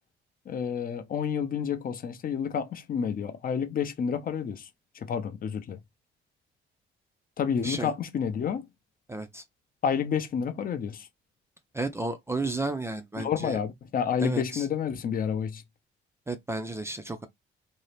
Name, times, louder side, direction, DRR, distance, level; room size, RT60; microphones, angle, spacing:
voice 1, 0.5-4.7 4.9-5.8 7.4-8.7 9.8-11.1 13.2-15.6, left 7 dB, 45° left, 0.5 m, -29 dB
voice 2, 9.1-9.4 11.7-13.6 14.2-14.6 16.3-17.3, right 2 dB, 15° right, 0.4 m, -32 dB
2.6 x 2.0 x 3.1 m
cardioid pair, 90°, 20 cm